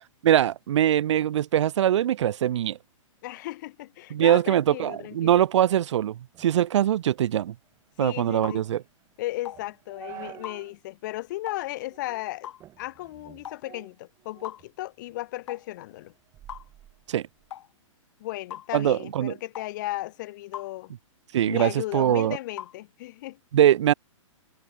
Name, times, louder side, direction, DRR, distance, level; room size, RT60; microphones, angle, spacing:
voice 1, 0.2-2.8 4.1-7.5 8.0-8.8 17.1-17.3 18.7-19.3 21.3-22.4 23.5-23.9, right 11 dB, 60° right, 0.7 m, -22 dB
voice 2, 3.2-5.4 8.0-8.6 9.2-16.1 18.2-20.9 21.4-23.4, left 17 dB, 35° left, 0.7 m, -35 dB
sound 1, 6.3-10.8 11.2-11.3 11.9-12.3 12.6-14.7 15.1-17.5, right 12 dB, 15° right, 5.3 m, -50 dB
sound 2, 8.4-8.6 9.4-9.6 10.4-10.6 11.5-11.6 12.4-12.6 13.4-13.6 14.4-14.6 15.5-15.7 16.5-16.7 17.5-17.7 18.5-18.7 19.5-19.7 20.5-20.7 21.6-21.8 22.6-22.8, left 11 dB, 60° left, 0.9 m, -39 dB
hypercardioid pair, 160°, 17 cm